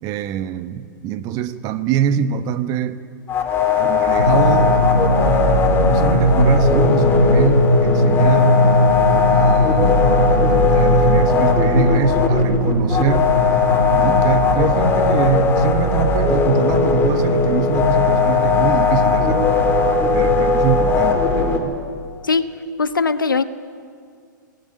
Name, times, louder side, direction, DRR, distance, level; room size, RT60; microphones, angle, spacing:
voice 1, 0.0-3.0 3.8-4.8 5.8-8.6 9.3-13.3 13.9-19.5 20.1-21.8, right 9 dB, 35° right, 11 dB, 1.2 m, -24 dB
sound 1, 3.3-21.6, left 5 dB, 20° left, 3.3 m, -18 dB
Drum, 4.2-20.4, equal, 90° right, 2.5 m, -20 dB
voice 2, 22.8-23.4, left 4 dB, 85° left, 12 dB, 1.1 m, -19 dB
21.0 x 16.5 x 9.9 m, 2.2 s
figure-of-eight pair, 110°, 11 cm